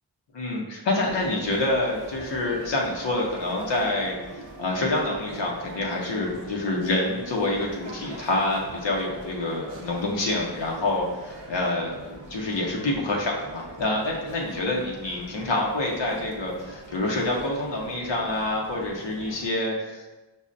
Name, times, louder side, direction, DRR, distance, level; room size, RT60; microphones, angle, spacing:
voice 1, 0.3-20.1, left 2 dB, 90° left, -2 dB, 0.6 m, -27 dB
sound 1, 1.0-19.5, right 2 dB, 85° right, 0.6 m, -43 dB
5.3 x 2.0 x 2.5 m, 1.1 s
wide cardioid pair, 60°, 43 cm